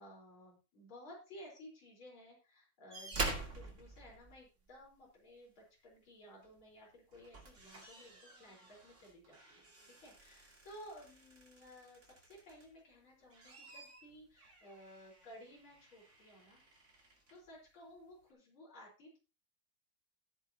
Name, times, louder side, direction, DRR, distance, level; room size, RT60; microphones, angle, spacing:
voice 1, 0.0-16.6 17.3-19.2, equal, 75° left, -3 dB, 5.1 m, -56 dB
sound 1, 2.9-4.9 6.4-6.6 7.0-12.8 13.2-17.4 18.3-18.4, right 3 dB, 35° right, 2.6 m, -47 dB
14.0 x 10.0 x 2.8 m, 0.30 s
omnidirectional pair, 2.3 m